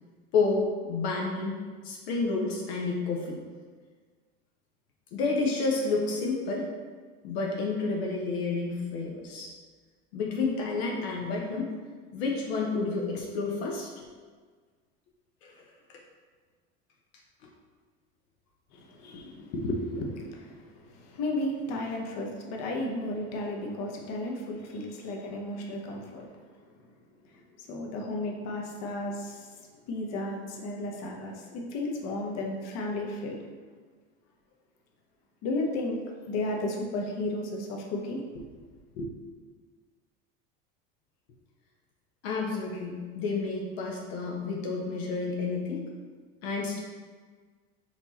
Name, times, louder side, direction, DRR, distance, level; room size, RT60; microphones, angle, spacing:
voice 1, 0.3-1.6 1.8-3.4 5.1-6.7 7.2-9.5 10.1-11.7 12.1-14.1 15.4-15.6 15.9-16.0 19.1-19.5 42.2-45.9 46.4-46.8, left 3 dB, 85° left, -1 dB, 0.8 m, -30 dB
voice 2, 18.7-26.3 27.3-29.5 29.9-33.4 35.4-36.0 36.3-38.4 38.9-39.1, left 1 dB, 55° left, 0 dB, 0.9 m, -34 dB
4.4 x 2.9 x 4.0 m, 1.5 s
supercardioid pair, 115°, 31 cm